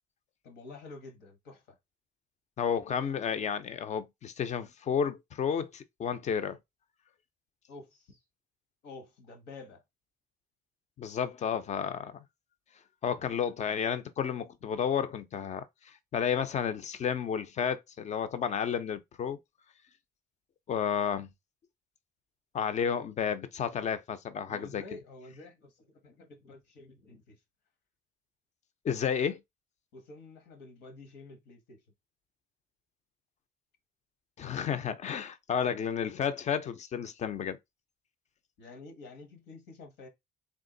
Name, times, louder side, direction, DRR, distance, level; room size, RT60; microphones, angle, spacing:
voice 1, 0.4-1.6 7.7-8.2 8.8-9.8 13.2-13.3 24.5-27.4 29.9-31.8 38.6-40.1, left 3 dB, 80° left, 1.3 m, -49 dB
voice 2, 2.6-6.6 11.0-12.2 13.0-15.7 16.1-19.4 20.7-21.3 22.5-24.8 28.8-29.4 34.4-37.6, left 7 dB, 45° left, 0.6 m, -31 dB
3.6 x 2.4 x 3.8 m
cardioid pair, 110°, 17 cm